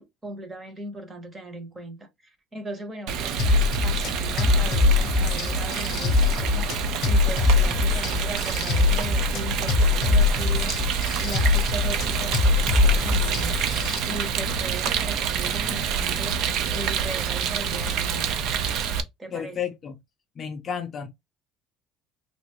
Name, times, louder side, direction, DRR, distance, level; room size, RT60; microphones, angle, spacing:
voice 1, 0.0-13.8 14.1-18.4 19.2-19.6, right 1 dB, 15° right, 0.8 m, -38 dB
Rain, 3.1-19.0, right 7 dB, 50° right, 0.5 m, -27 dB
sound 1, 3.4-14.0, left 4 dB, 45° left, 0.8 m, -22 dB
sound 2, 6.5-18.1, right 6 dB, 80° right, 0.8 m, -46 dB
voice 2, 19.3-20.0 20.4-21.1, left 8 dB, 30° left, 0.4 m, -32 dB
3.3 x 2.5 x 2.9 m
cardioid pair, 175°, 0 cm